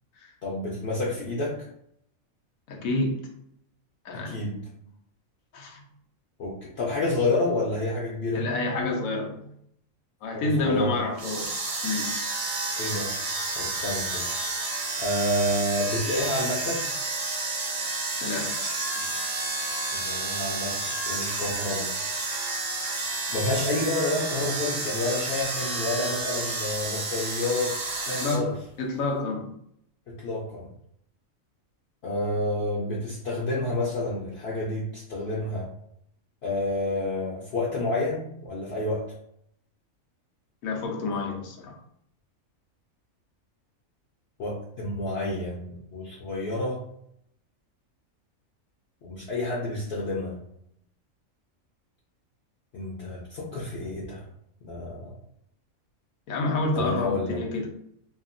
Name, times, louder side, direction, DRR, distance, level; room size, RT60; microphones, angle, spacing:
voice 1, 0.4-1.7 4.1-4.6 6.4-8.5 10.3-11.0 12.8-13.1 13.6-14.3 15.0-16.9 19.9-21.9 23.3-27.8 28.1-28.5 30.1-30.7 32.0-35.7 36.4-39.1 44.4-46.8 49.0-50.4 52.7-54.2 54.6-55.1 56.7-57.4, left 2 dB, 60° left, -5 dB, 0.8 m, -29 dB
voice 2, 2.7-3.3 4.0-4.5 5.5-5.8 8.3-9.5 10.2-11.6 11.8-12.2 18.2-18.6 18.9-19.1 28.2-29.5 40.6-41.8 56.3-57.7, left 2 dB, 85° left, 0 dB, 1.1 m, -29 dB
sound 1, 11.1-28.4, right 3 dB, 55° right, 0.9 m, -30 dB
2.8 x 2.4 x 2.5 m, 0.71 s
omnidirectional pair, 1.4 m